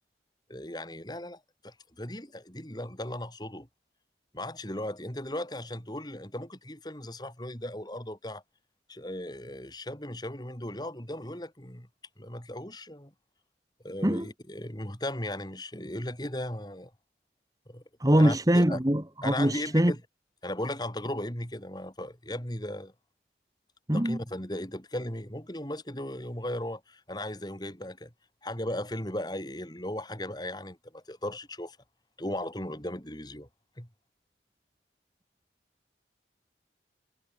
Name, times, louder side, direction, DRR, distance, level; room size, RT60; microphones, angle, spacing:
voice 1, 0.5-3.7 4.3-8.4 8.9-11.9 12.2-13.1 13.8-16.9 17.7-18.8 19.2-20.0 20.4-22.9 23.9-28.1 28.4-31.8 32.2-33.5 33.8-33.9, left 1 dB, 25° left, 4.8 m, -37 dB
voice 2, 18.0-19.9 23.9-24.2, equal, 20° right, 1.5 m, -23 dB
head